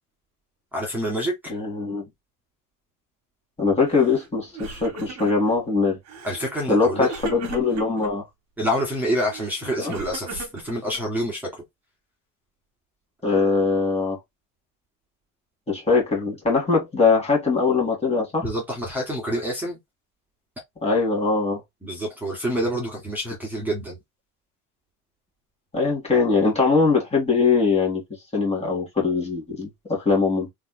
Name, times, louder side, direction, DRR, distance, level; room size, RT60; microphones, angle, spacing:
voice 1, 0.7-1.6 6.2-7.1 8.6-11.5 18.4-19.8 21.8-24.0, equal, 5° right, 1.6 m, -27 dB
voice 2, 1.5-2.0 3.6-6.0 6.7-8.2 9.8-9.9 13.2-14.2 15.7-18.5 20.8-21.6 25.7-28.0 28.3-30.5, left 4 dB, 15° left, 1.9 m, -21 dB
Crying sobbing, 3.9-4.3 4.5-5.6 6.1-6.5 7.1-8.1 9.0-11.2, right 4 dB, 45° right, 1.5 m, -37 dB
3.6 x 3.3 x 2.2 m
cardioid pair, 125°, 36 cm